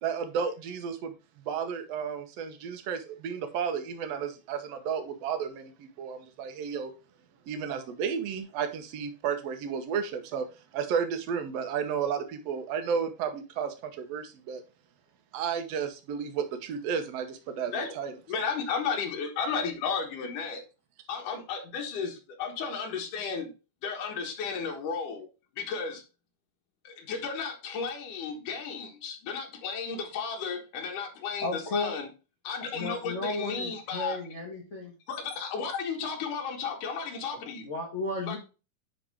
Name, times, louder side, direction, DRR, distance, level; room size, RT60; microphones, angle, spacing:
voice 1, 0.0-1.1 1.5-6.9 7.5-10.5 10.7-14.6 15.3-18.1, right 7 dB, 65° right, 1.8 m, -32 dB
voice 2, 18.3-20.6 21.1-23.5 23.8-25.3 25.5-26.0 26.8-32.1 32.4-34.2 35.1-37.7 38.3-38.4, left 5 dB, 75° left, 3.0 m, -33 dB
voice 3, 31.4-31.9 32.7-34.9 37.6-38.4, left 2 dB, 45° left, 1.0 m, -33 dB
10.0 x 4.0 x 3.5 m
omnidirectional pair, 3.7 m